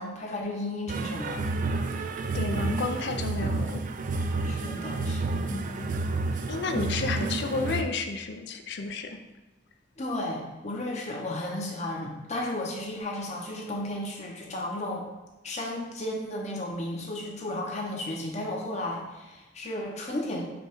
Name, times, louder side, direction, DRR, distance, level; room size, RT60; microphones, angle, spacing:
voice 1, 0.0-1.4 4.4-5.6 10.0-15.1 15.4-20.4, left 1 dB, 35° left, -1 dB, 0.8 m, -34 dB
sound 1, 0.9-7.8, right 3 dB, 45° right, 0.3 m, -30 dB
voice 2, 2.3-3.9 4.5-4.6 5.5-5.9 6.5-9.2, left 3 dB, 60° left, 6 dB, 0.4 m, -32 dB
5.2 x 2.3 x 4.5 m, 1.1 s
head